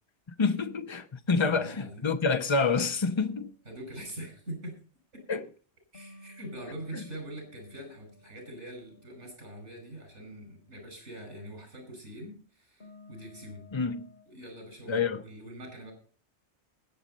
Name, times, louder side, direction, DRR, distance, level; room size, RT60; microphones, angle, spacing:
voice 1, 0.4-3.5 5.3-5.5 6.9-7.0 13.7-14.1 14.9-15.2, left 4 dB, 25° left, 0.9 m, -27 dB
voice 2, 1.4-2.1 3.7-4.8 5.1-5.2 5.9-13.6 14.3-15.9, right 1 dB, 85° right, 6.1 m, -43 dB
sound 1, 5.9-10.1 12.8-14.2, left 2 dB, 55° left, 3.5 m, -55 dB
20.5 x 7.8 x 4.1 m
omnidirectional pair, 1.2 m